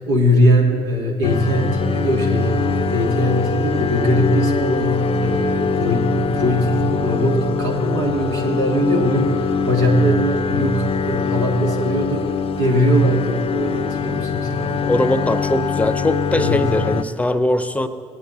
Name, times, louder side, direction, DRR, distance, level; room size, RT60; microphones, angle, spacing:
voice 1, 0.0-12.2 12.6-14.8 16.3-16.7, equal, 80° right, -1 dB, 1.6 m, -20 dB
sound 1, 1.2-17.0, left 5 dB, 40° left, 0.5 m, -23 dB
voice 2, 14.6-17.9, left 1 dB, 10° left, 12 dB, 0.7 m, -21 dB
18.5 x 9.1 x 3.6 m, 2.4 s
hypercardioid pair, 50°, 14 cm